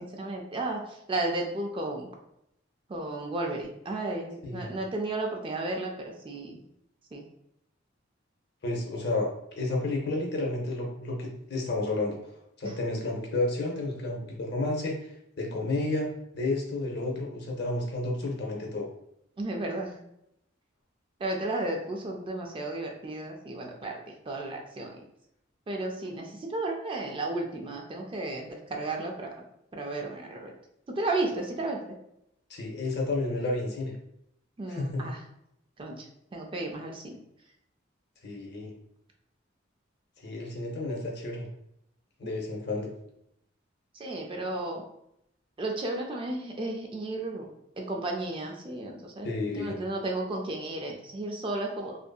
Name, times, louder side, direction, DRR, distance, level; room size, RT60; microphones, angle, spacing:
voice 1, 0.0-2.1 2.9-6.6 7.1-7.2 12.6-12.7 19.4-20.0 21.2-24.0 24.3-25.0 25.7-29.3 29.7-30.5 30.9-31.8 34.6-35.2 35.8-36.0 36.3-37.2 42.2-42.3 43.9-44.8 45.6-47.5 47.8-52.0, right 2 dB, 25° right, 1 dB, 0.3 m, -33 dB
voice 2, 4.4-4.7 8.6-12.2 12.6-16.1 16.3-18.9 32.5-33.9 34.7-35.0 38.2-38.7 40.2-41.5 42.2-42.9 49.2-49.8, left 2 dB, 55° left, 0 dB, 0.7 m, -31 dB
2.7 x 2.5 x 2.2 m, 0.78 s
head